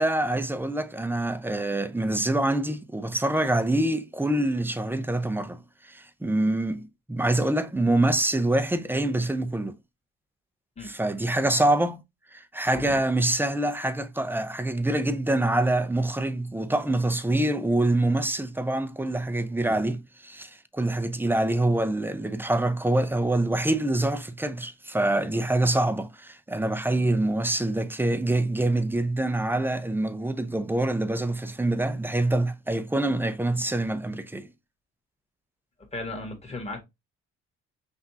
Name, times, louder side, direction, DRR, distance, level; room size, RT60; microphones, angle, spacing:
voice 1, 0.0-9.7 10.8-12.0 12.3-34.5, right 1 dB, 5° right, 0.6 m, -25 dB
voice 2, 35.9-36.8, left 2 dB, 20° left, 1.8 m, -35 dB
5.8 x 2.6 x 2.8 m
cardioid pair, 90°, 30 cm